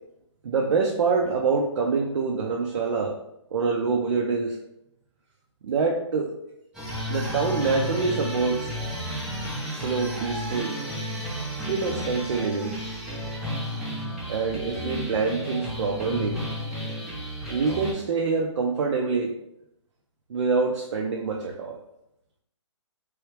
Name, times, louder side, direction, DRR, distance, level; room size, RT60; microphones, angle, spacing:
voice 1, 0.4-3.2 3.5-4.6 5.6-6.3 7.1-8.7 9.7-10.7 11.7-12.7 14.3-16.4 17.5-19.3 20.3-21.8, right 4 dB, 65° right, 0 dB, 0.5 m, -25 dB
sound 1, 6.7-17.9, equal, 5° right, 0.4 m, -32 dB
3.1 x 2.3 x 3.2 m, 0.82 s
hypercardioid pair, 150°, 16 cm